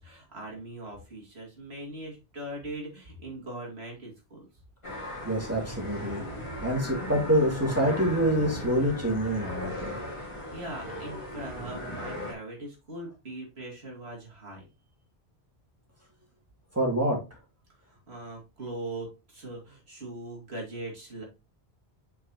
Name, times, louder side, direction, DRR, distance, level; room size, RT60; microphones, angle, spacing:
voice 1, 0.0-4.5 10.5-14.7 17.8-21.2, right 1 dB, 70° right, -1 dB, 2.7 m, -40 dB
sound 1, 4.8-12.3, left 1 dB, 30° left, 1.9 m, -37 dB
voice 2, 5.2-6.2 6.6-9.9 16.7-17.2, equal, 15° right, 0 dB, 2.1 m, -26 dB
7.9 x 4.7 x 2.9 m, 0.27 s
omnidirectional pair, 1.1 m